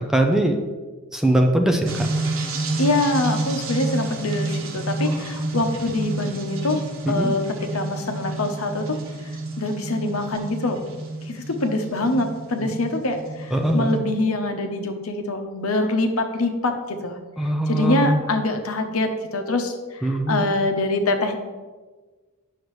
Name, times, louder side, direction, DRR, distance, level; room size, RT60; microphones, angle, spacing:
voice 1, 0.1-0.6 1.1-2.1 5.0-5.3 7.1-7.3 12.6-12.7 13.5-14.0 17.4-18.2 20.0-20.5, right 1 dB, ahead, 3 dB, 0.5 m, -21 dB
sound 1, 1.9-14.0, right 2 dB, 65° right, 0.9 m, -30 dB
voice 2, 2.8-9.0 9.6-10.8 11.2-17.2 17.7-21.3, left 2 dB, 80° left, 5 dB, 0.9 m, -24 dB
9.2 x 6.6 x 3.1 m, 1.3 s
head